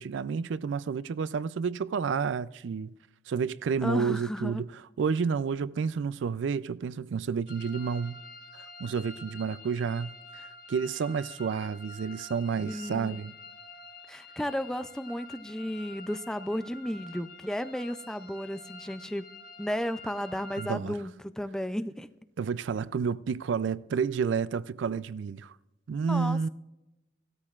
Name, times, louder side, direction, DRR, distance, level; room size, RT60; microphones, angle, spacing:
voice 1, 0.0-2.9 3.3-4.7 5.0-8.2 8.5-13.3 20.6-21.0 22.4-25.5 25.9-26.5, right 6 dB, 75° right, 0.4 m, -30 dB
voice 2, 3.8-4.6 12.7-13.2 14.1-19.3 19.6-22.1 26.0-26.5, equal, 5° left, 0.3 m, -33 dB
sound 1, 7.5-20.7, left 2 dB, 45° left, 0.8 m, -48 dB
16.5 x 13.0 x 2.4 m
head